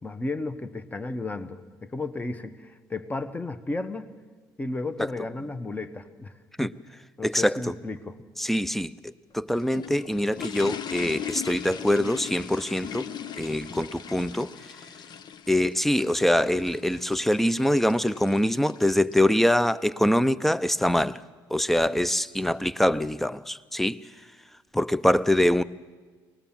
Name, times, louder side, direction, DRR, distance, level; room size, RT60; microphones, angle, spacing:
voice 1, 0.0-4.1 4.6-6.7 7.2-8.2, left 2 dB, 20° left, 1.3 m, -34 dB
voice 2, 7.2-7.5 8.4-13.1 13.4-14.5 15.5-21.2 21.5-24.0 24.7-25.6, left 1 dB, 5° left, 0.6 m, -24 dB
sound 1, 9.3-19.6, left 8 dB, 50° left, 0.9 m, -39 dB
24.5 x 20.0 x 7.3 m
supercardioid pair, 85°, 9 cm